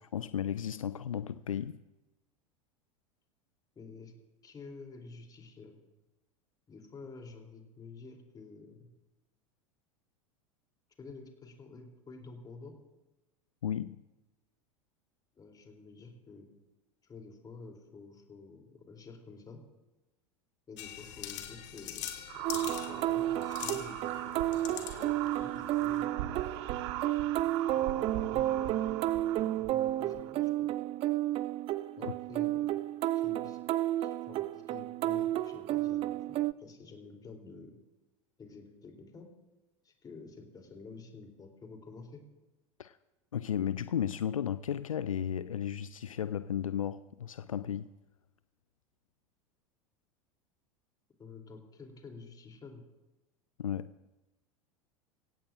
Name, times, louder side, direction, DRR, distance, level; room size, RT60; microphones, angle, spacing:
voice 1, 0.1-1.8 13.6-14.0 32.0-32.1 42.8-43.0 43.3-47.9 53.6-54.0, left 9 dB, 75° left, 0.4 m, -34 dB
voice 2, 3.7-4.1 4.4-5.8 6.7-8.9 11.0-12.7 15.3-16.5 17.0-19.6 20.7-22.1 22.3-24.4 24.7-26.4 28.3-29.1 29.4-30.7 32.0-32.7 33.1-33.6 34.0-37.8 38.4-39.3 39.8-42.2 51.2-52.8, left 4 dB, 20° left, 3.2 m, -50 dB
sound 1, 20.8-26.1, left 11 dB, 55° left, 2.1 m, -44 dB
sound 2, 22.3-30.3, right 11 dB, 55° right, 1.3 m, -40 dB
sound 3, 22.4-36.5, right 14 dB, 35° right, 0.5 m, -32 dB
25.0 x 17.0 x 2.5 m
figure-of-eight pair, 80°, 18 cm